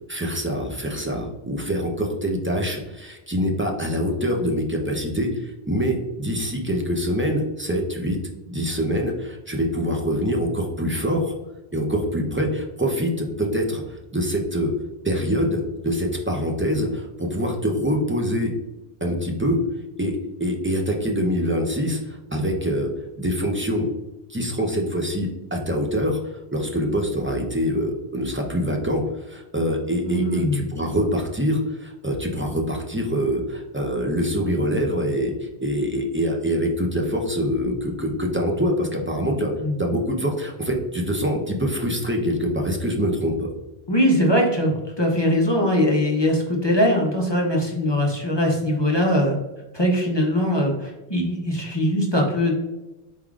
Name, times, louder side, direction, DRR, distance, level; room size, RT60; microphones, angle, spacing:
voice 1, 0.1-8.2 8.5-11.3 11.7-14.7 15.0-18.5 19.0-19.6 20.0-22.9 23.2-23.9 24.3-43.5, equal, 15° right, 1 dB, 0.4 m, -25 dB
voice 2, 30.0-30.6 39.6-39.7 43.9-49.4 49.7-52.5, equal, 30° left, -1 dB, 0.6 m, -21 dB
4.8 x 3.6 x 2.3 m, 1.0 s
omnidirectional pair, 1.1 m